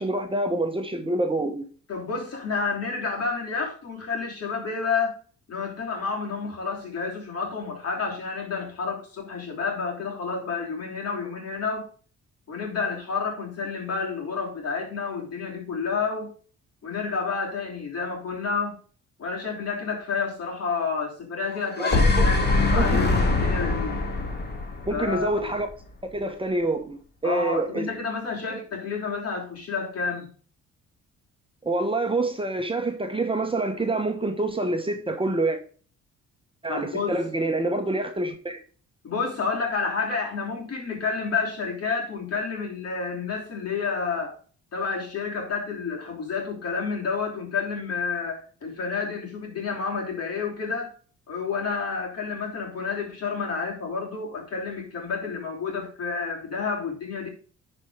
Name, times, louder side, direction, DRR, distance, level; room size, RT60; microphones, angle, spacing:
voice 1, 0.0-1.7 21.8-22.3 22.7-23.0 24.9-25.7 26.1-27.9 28.5-28.6 31.6-35.6 36.6-38.6, right 2 dB, 15° right, 1.2 m, -27 dB
voice 2, 1.9-5.2 5.5-11.9 12.5-16.3 16.8-18.8 19.2-24.0 24.9-25.5 27.2-30.3 36.7-37.2 39.0-44.3 44.7-50.9 51.3-57.3, left 5 dB, 55° left, 3.5 m, -30 dB
sound 1, 21.5-25.7, left 3 dB, 35° left, 1.9 m, -23 dB
10.5 x 4.5 x 5.0 m
cardioid pair, 90°, 30 cm